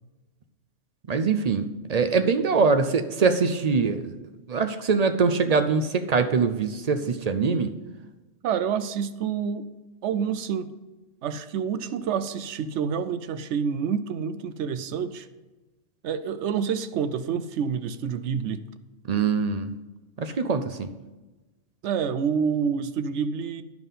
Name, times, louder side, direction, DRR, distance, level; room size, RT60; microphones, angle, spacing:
voice 1, 1.1-4.1 4.5-7.7 19.1-19.7 20.2-20.9, right 5 dB, 55° right, 9 dB, 0.4 m, -23 dB
voice 2, 8.4-9.7 10.0-10.7 11.2-15.3 16.0-18.6 21.8-23.6, right 7 dB, 70° right, 12 dB, 0.8 m, -28 dB
10.5 x 5.5 x 5.6 m, 1.2 s
omnidirectional pair, 1.3 m